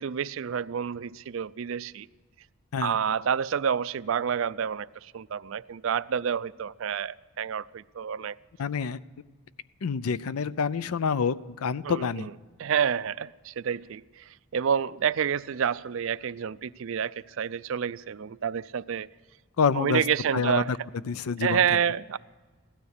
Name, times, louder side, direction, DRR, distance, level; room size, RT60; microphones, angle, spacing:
voice 1, 0.0-2.1 2.8-8.4 11.8-12.3 12.6-14.2 14.5-19.1 19.7-20.7 21.4-22.2, right 7 dB, 65° right, 0.4 m, -28 dB
voice 2, 8.6-9.0 9.8-12.3 19.6-20.0 20.3-20.8 21.1-21.8, left 5 dB, 85° left, 0.5 m, -27 dB
16.0 x 12.5 x 6.6 m
head